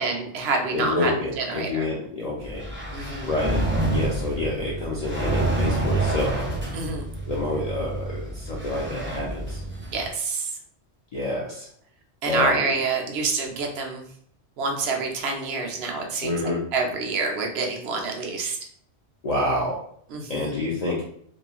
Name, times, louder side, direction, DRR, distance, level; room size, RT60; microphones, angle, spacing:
voice 1, 0.0-1.9 2.9-3.3 6.7-7.1 9.9-10.5 12.2-14.0 14.6-16.4 16.7-18.6 20.1-20.7, right 4 dB, 70° right, 2 dB, 0.8 m, -27 dB
voice 2, 0.7-2.7 3.3-3.6 3.9-6.4 7.3-9.6 11.1-11.7 12.3-12.6 16.2-16.6 19.2-19.8 20.3-21.0, left 2 dB, 60° left, -4 dB, 0.4 m, -28 dB
sound 1, 2.4-10.1, right 2 dB, 20° right, 0.3 m, -28 dB
2.9 x 2.3 x 2.3 m, 0.64 s
omnidirectional pair, 1.2 m